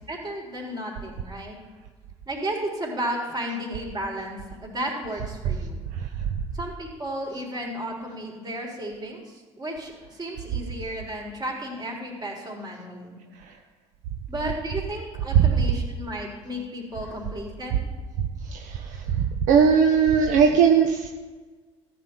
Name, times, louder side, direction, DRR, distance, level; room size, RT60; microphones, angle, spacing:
voice 1, 0.0-1.6 2.3-5.8 6.5-13.2 14.3-17.8, right 1 dB, 30° right, -1 dB, 3.6 m, -33 dB
voice 2, 18.5-21.1, right 7 dB, 60° right, 4 dB, 0.9 m, -19 dB
14.0 x 7.9 x 4.5 m, 1.4 s
hypercardioid pair, 60°, 14 cm